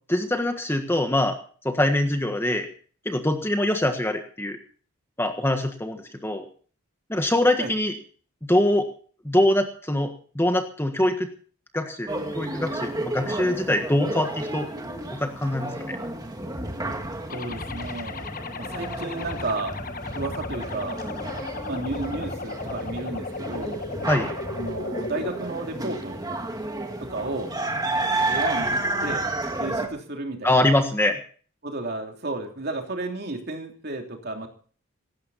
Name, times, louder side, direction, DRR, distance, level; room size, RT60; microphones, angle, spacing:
voice 1, 0.1-2.7 3.0-4.6 5.2-6.5 7.1-7.9 8.5-8.9 9.2-11.3 11.7-14.7 15.1-16.0 24.1-24.3 30.4-31.2, left 1 dB, 10° left, 5 dB, 1.5 m, -23 dB
sound 1, 12.1-29.9, right 2 dB, 15° right, 2.0 m, -31 dB
sound 2, 17.3-25.3, left 3 dB, 40° left, 1.1 m, -36 dB
voice 2, 17.3-18.3 18.6-19.8 20.1-21.0 21.7-23.8 24.6-26.2 27.0-27.5 28.1-29.2 29.6-30.7 31.6-34.5, right 2 dB, 45° right, 3 dB, 3.1 m, -32 dB
18.0 x 15.5 x 4.2 m, 0.43 s
head